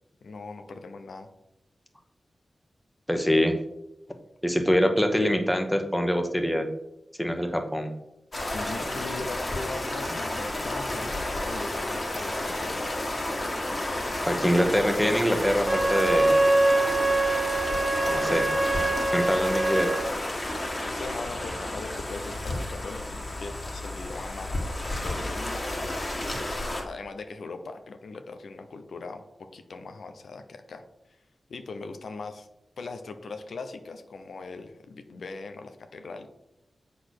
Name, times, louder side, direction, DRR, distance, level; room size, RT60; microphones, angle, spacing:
voice 1, 0.2-1.3 8.5-13.1 13.9-14.5 18.1-18.4 19.0-19.1 20.7-25.9 26.4-29.2 29.5-30.8 31.5-32.5 32.8-36.3, left 3 dB, 85° left, 7 dB, 0.8 m, -40 dB
voice 2, 3.1-3.6 4.4-6.7 7.2-7.9 14.3-16.4 18.1-18.5 19.1-20.0, equal, 5° left, 5 dB, 1.1 m, -24 dB
sound 1, 8.3-26.8, left 1 dB, 35° left, 1.8 m, -31 dB
Wind instrument woodwind instrument, 15.6-20.1, right 2 dB, 15° right, 0.6 m, -24 dB
7.6 x 4.2 x 6.5 m, 0.86 s
wide cardioid pair, 80°, 0 cm